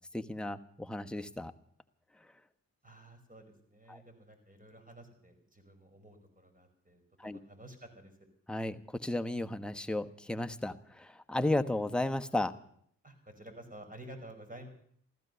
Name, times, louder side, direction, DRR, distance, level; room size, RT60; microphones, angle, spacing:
voice 1, 0.1-1.5 7.2-7.4 8.5-12.5, left 1 dB, ahead, 6 dB, 1.1 m, -34 dB
voice 2, 2.8-8.2 13.0-14.7, right 1 dB, 20° right, 7 dB, 5.3 m, -52 dB
15.0 x 14.0 x 6.8 m, 0.65 s
hypercardioid pair, 40°, 39 cm